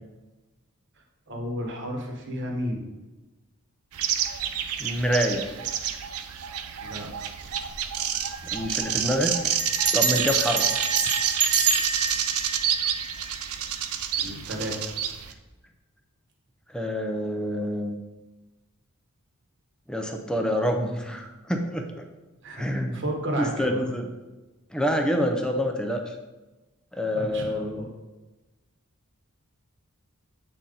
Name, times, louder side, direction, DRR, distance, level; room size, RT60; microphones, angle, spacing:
voice 1, 1.3-2.9 6.8-7.1 14.2-14.9 22.4-22.7 22.9-23.8 27.1-27.9, equal, 55° right, 1 dB, 1.2 m, -32 dB
sound 1, 3.9-15.3, right 9 dB, 75° right, 0.5 m, -28 dB
voice 2, 4.8-5.5 8.4-9.6 9.9-10.7 16.7-18.0 19.9-22.1 22.6-23.0 23.4-24.1 24.7-26.1 26.9-27.8, equal, 5° left, 4 dB, 0.5 m, -27 dB
Bell, 7.5-7.8 8.1-8.2 8.4-8.8 9.6-13.7, right 4 dB, 30° right, 0.8 m, -28 dB
7.7 x 4.2 x 3.9 m, 1.1 s
head